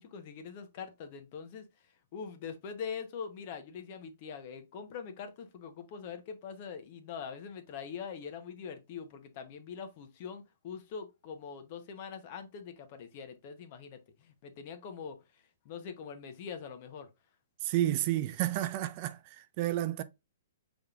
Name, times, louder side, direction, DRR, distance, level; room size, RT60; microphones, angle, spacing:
voice 1, 0.0-1.6 2.1-15.2 15.6-17.1, left 6 dB, 45° left, 0.8 m, -43 dB
voice 2, 17.6-20.0, right 14 dB, 40° right, 0.4 m, -31 dB
5.3 x 3.5 x 2.4 m
hypercardioid pair, 145°, 0 cm